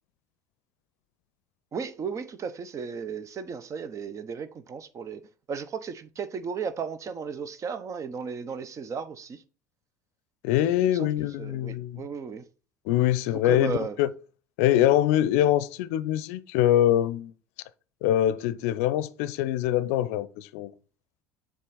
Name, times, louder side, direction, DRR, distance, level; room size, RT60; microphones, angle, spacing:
voice 1, 1.7-5.2 5.5-9.4 10.9-11.1 11.4-12.4 13.4-14.0, right 6 dB, 40° right, 0.9 m, -35 dB
voice 2, 10.4-12.1 12.9-14.1 14.6-17.3 18.0-20.7, left 12 dB, 70° left, 0.5 m, -24 dB
7.5 x 3.7 x 4.0 m
hypercardioid pair, 65°, 8 cm